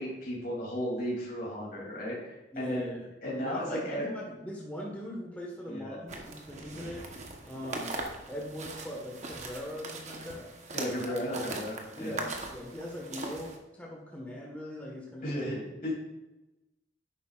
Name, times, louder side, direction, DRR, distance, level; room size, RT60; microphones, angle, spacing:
voice 1, 0.0-2.9 3.2-4.1 5.7-6.0 10.7-12.2 15.2-15.9, equal, 50° left, -5 dB, 3.1 m, -34 dB
voice 2, 2.5-3.1 3.3-7.0 7.4-7.9 8.3-10.5 11.1-11.2 12.0-15.4, equal, 10° left, -2 dB, 1.5 m, -40 dB
sound 1, 6.1-13.6, right 2 dB, 40° right, 1.1 m, -40 dB
10.5 x 8.2 x 2.5 m, 1.0 s
head